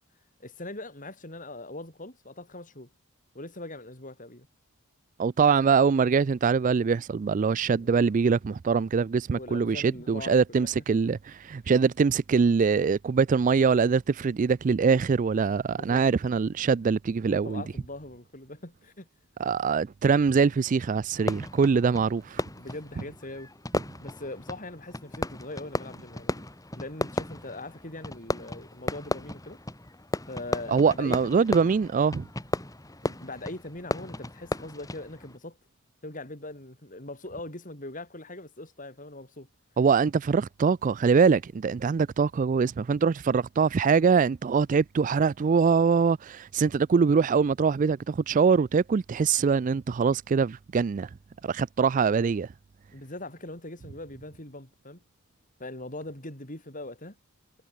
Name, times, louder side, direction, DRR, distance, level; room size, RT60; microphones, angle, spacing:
voice 1, 0.4-2.9 3.3-4.5 7.7-7.9 9.3-11.1 15.7-16.0 17.3-19.1 22.5-23.5 24.0-26.5 26.7-29.6 30.3-31.5 33.0-35.6 36.0-39.5 52.9-55.0 55.6-57.2, left 2 dB, 40° left, 6.1 m, -41 dB
voice 2, 5.2-17.6 19.4-22.4 30.7-32.3 39.8-51.1 51.4-52.5, right 5 dB, 35° right, 0.3 m, -23 dB
Fireworks, 21.1-35.4, left 1 dB, 15° left, 2.6 m, -35 dB
head